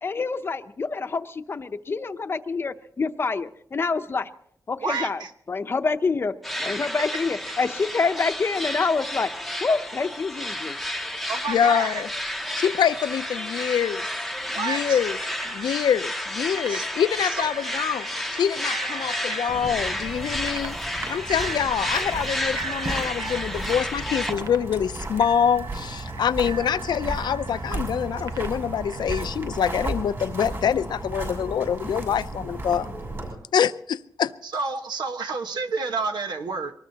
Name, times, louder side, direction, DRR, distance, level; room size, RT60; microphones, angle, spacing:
voice 1, 0.0-4.3 4.7-5.2 5.5-6.3 6.6-9.3 9.6-10.8, left 4 dB, 35° left, 9 dB, 0.7 m, -26 dB
voice 2, 4.8-5.3 7.5-7.6 11.3-12.0 14.5-15.0 16.7-16.9 17.3-17.5 17.9-18.1 34.4-36.7, right 4 dB, 90° right, 6 dB, 1.4 m, -30 dB
sound 1, 6.4-24.3, left 1 dB, ahead, 0.8 m, -31 dB
voice 3, 11.5-12.1 12.6-14.1 14.6-15.2 15.4-18.1 18.3-20.8 21.1-32.9 33.5-34.3, left 8 dB, 85° left, 14 dB, 0.5 m, -25 dB
Bicycle bell, 15.1-29.2, right 6 dB, 60° right, 0.6 m, -41 dB
sound 2, 19.5-33.3, right 2 dB, 40° right, 6.2 m, -34 dB
24.0 x 19.5 x 2.9 m, 0.67 s
wide cardioid pair, 175°, 7 cm